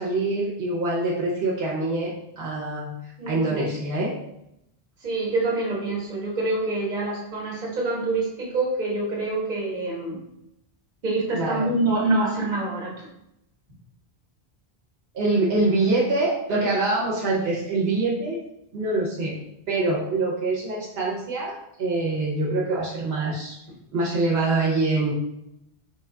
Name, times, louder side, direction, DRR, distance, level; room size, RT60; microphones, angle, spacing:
voice 1, 0.0-3.0 3.3-4.1 11.3-11.7 15.1-18.4 18.7-23.6 23.9-25.1, right 2 dB, 75° right, -4 dB, 0.9 m, -25 dB
voice 2, 3.2-3.6 5.0-10.2 11.0-13.1, right 2 dB, 45° right, -3 dB, 1.0 m, -26 dB
3.4 x 2.2 x 3.6 m, 0.82 s
omnidirectional pair, 1.0 m